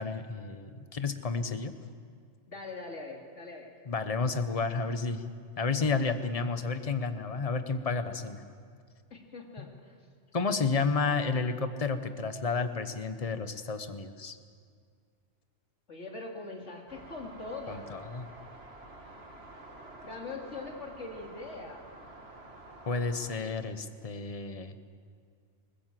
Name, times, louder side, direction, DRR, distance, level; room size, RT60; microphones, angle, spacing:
voice 1, 0.0-1.7 3.9-5.2 5.6-8.4 10.3-14.4 17.7-18.3 22.9-24.7, left 4 dB, 30° left, 9 dB, 1.1 m, -31 dB
voice 2, 2.5-3.7 9.1-9.9 15.9-17.9 19.0-19.1 20.0-21.8, left 3 dB, 75° left, 1 dB, 3.1 m, -42 dB
sound 1, 16.9-23.4, right 2 dB, 55° right, 2.2 m, -49 dB
21.5 x 20.0 x 7.6 m, 2.1 s
omnidirectional pair, 1.2 m